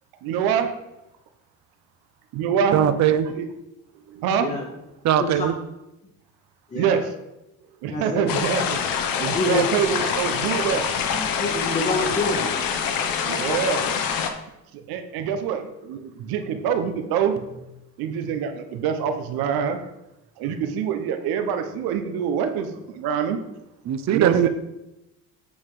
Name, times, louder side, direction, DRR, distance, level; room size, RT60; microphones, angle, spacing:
voice 1, 0.2-0.7 2.3-2.8 3.4-3.5 4.1-4.5 6.7-7.0 7.8-8.8 9.2-10.9 13.3-13.8 14.9-17.7 18.0-19.8 20.4-23.4 24.1-24.5, right 7 dB, 90° right, 8 dB, 1.1 m, -25 dB
voice 2, 2.7-3.3 5.0-5.5 23.9-24.5, right 10 dB, 50° right, 11 dB, 0.8 m, -20 dB
voice 3, 7.9-8.3 9.3-9.6 11.1-12.5, left 2 dB, 20° left, -1 dB, 1.1 m, -27 dB
sound 1, 8.3-14.3, left 7 dB, 70° left, 1.1 m, -25 dB
8.4 x 5.7 x 4.9 m, 0.93 s
cardioid pair, 130°, 36 cm